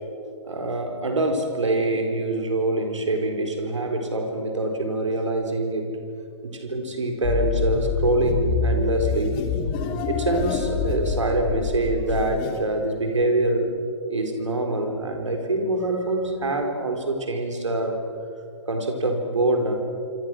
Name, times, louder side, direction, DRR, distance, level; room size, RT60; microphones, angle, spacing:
voice 1, 0.4-5.9 6.4-9.4 10.1-13.7 14.1-18.0 18.7-19.8, right 2 dB, 75° right, 4 dB, 4.3 m, -25 dB
sound 1, 7.2-12.6, left 6 dB, 30° left, 3.1 m, -26 dB
26.5 x 26.0 x 6.4 m, 2.6 s
figure-of-eight pair, 115°, 16 cm